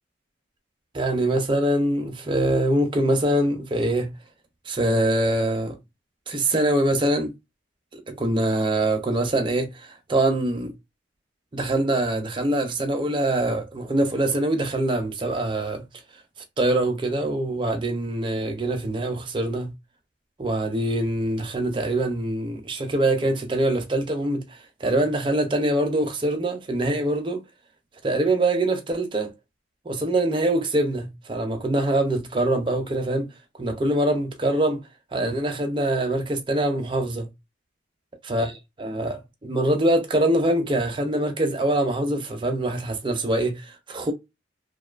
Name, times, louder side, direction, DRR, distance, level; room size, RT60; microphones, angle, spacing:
voice 1, 0.9-4.1 4.7-5.8 6.3-7.3 7.9-10.7 11.5-15.9 16.6-19.7 20.4-27.4 28.0-29.3 29.9-33.3 33.6-34.8 35.1-37.3 38.2-44.1, right 1 dB, 25° right, 0.5 m, -24 dB
2.5 x 2.2 x 2.4 m
head